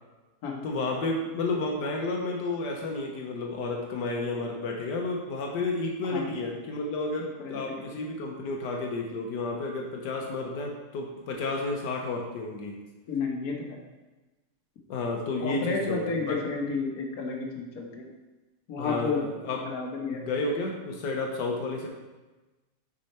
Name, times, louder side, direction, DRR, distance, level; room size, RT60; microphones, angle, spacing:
voice 1, 0.6-12.7 14.9-16.3 18.8-19.7 20.1-21.9, left 3 dB, 80° left, 0 dB, 1.5 m, -31 dB
voice 2, 6.0-6.5 7.4-7.8 13.1-13.8 15.4-18.1 18.7-19.4 19.6-20.2, left 4 dB, 60° left, 0 dB, 1.5 m, -32 dB
6.3 x 5.4 x 4.2 m, 1.2 s
omnidirectional pair, 1.8 m